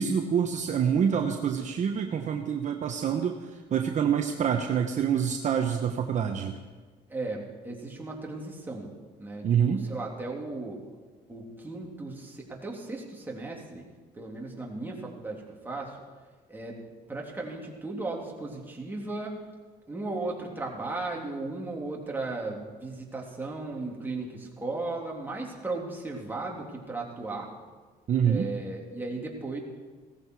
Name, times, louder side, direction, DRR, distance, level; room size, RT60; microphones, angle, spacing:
voice 1, 0.0-6.6 9.4-9.8 28.1-28.5, right 8 dB, 45° right, 4 dB, 1.0 m, -26 dB
voice 2, 7.1-8.9 9.2-10.8 11.3-13.9 14.1-16.0 16.5-16.8 17.1-19.4 19.9-27.5 28.2-29.6, right 2 dB, 10° right, -2 dB, 3.1 m, -36 dB
17.0 x 14.0 x 4.7 m, 1.4 s
cardioid pair, 110°, 17 cm